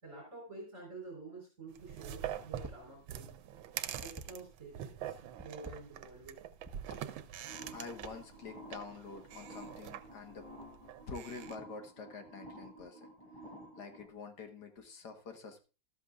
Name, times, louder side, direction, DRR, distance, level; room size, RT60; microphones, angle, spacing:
voice 1, 0.0-3.3 4.0-6.4, right 3 dB, 40° right, -1 dB, 4.6 m, -49 dB
sound 1, 1.7-11.6, right 10 dB, 90° right, 1.5 m, -44 dB
sound 2, 2.6-2.9 3.2-4.8 5.3-6.3 6.6-7.0 7.5-8.4, right 2 dB, 10° right, 1.1 m, -49 dB
sound 3, 7.4-14.0, right 1 dB, 15° left, 7.3 m, -52 dB
voice 2, 7.7-10.5 11.1-13.1 13.8-15.6, left 4 dB, 60° left, 5 dB, 1.9 m, -47 dB
13.0 x 12.5 x 2.4 m, 0.32 s
omnidirectional pair, 2.1 m